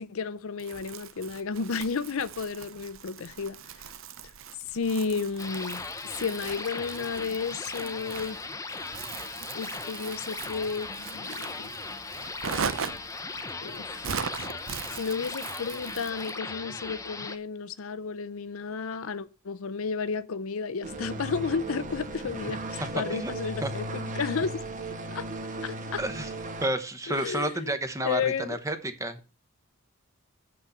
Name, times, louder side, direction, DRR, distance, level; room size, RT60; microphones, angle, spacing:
voice 1, 0.0-3.6 4.7-5.8 6.1-8.4 9.5-11.7 13.6-14.1 14.9-22.6 22.9-24.6 25.1-25.3 25.6-26.0 27.1-27.7 28.0-28.6, left 5 dB, 65° left, 0.6 m, -32 dB
Crumpling crinkling, 0.6-16.4, right 6 dB, 60° right, 0.7 m, -40 dB
sound 1, 5.4-17.4, left 3 dB, 15° left, 0.6 m, -38 dB
sound 2, 20.8-26.7, right 1 dB, 35° right, 1.2 m, -36 dB
voice 2, 26.0-26.3 26.6-29.2, right 1 dB, 15° right, 0.9 m, -30 dB
7.1 x 6.2 x 7.1 m
head